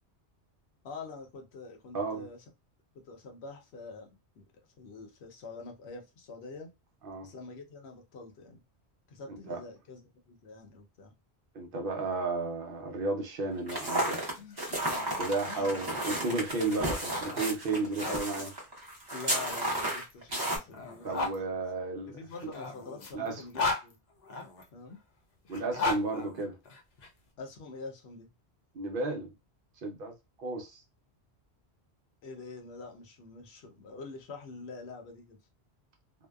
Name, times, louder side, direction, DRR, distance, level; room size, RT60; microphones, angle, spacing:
voice 1, 0.8-2.4 3.0-4.1 4.4-4.5 4.8-6.7 7.2-8.6 9.1-11.1 14.3-14.9 15.5-15.8 16.5-16.7 19.1-21.3 22.1-24.0 24.7-25.0 27.4-28.3 32.2-35.4, left 4 dB, 70° left, 0.9 m, -46 dB
voice 2, 1.9-2.3 7.0-7.3 9.5-9.6 11.5-14.2 15.2-18.5 21.0-22.2 23.1-23.4 25.5-26.6 28.7-29.3 29.8-30.1 30.4-30.8, right 3 dB, 60° right, 0.7 m, -33 dB
sound 1, 13.6-18.2 19.2-21.4 22.3-24.6 25.4-27.1, left 3 dB, 50° left, 0.6 m, -37 dB
sound 2, 13.7-20.6, right 1 dB, 25° right, 0.6 m, -33 dB
2.6 x 2.1 x 2.2 m
omnidirectional pair, 1.1 m